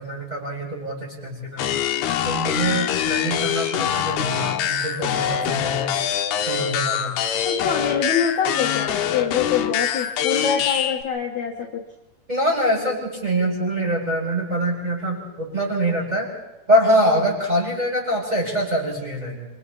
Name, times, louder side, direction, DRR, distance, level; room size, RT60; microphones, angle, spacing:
voice 1, 0.0-1.6 2.2-5.9 6.5-7.1 12.3-16.3 16.7-19.5, equal, 10° right, -3 dB, 6.9 m, -24 dB
sound 1, 1.6-11.0, left 9 dB, 70° left, 2.9 m, -24 dB
voice 2, 7.4-11.8, left 7 dB, 55° left, 1 dB, 2.2 m, -25 dB
27.5 x 25.5 x 4.2 m, 1.0 s
omnidirectional pair, 5.2 m